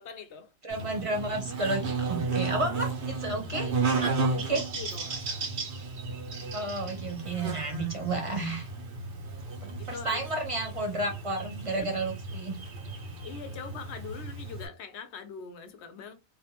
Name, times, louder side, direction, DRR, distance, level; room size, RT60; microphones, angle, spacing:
voice 1, 0.0-0.5 4.2-5.5 9.8-10.2 11.8-11.9 13.2-16.1, left 6 dB, 85° left, 0.9 m, -43 dB
voice 2, 0.6-4.1 4.5-4.6 6.5-8.7 9.6-12.6, right 2 dB, 35° right, 0.6 m, -32 dB
Buzz, 0.7-14.7, right 4 dB, 90° right, 1.0 m, -34 dB
2.5 x 2.1 x 2.8 m
omnidirectional pair, 1.1 m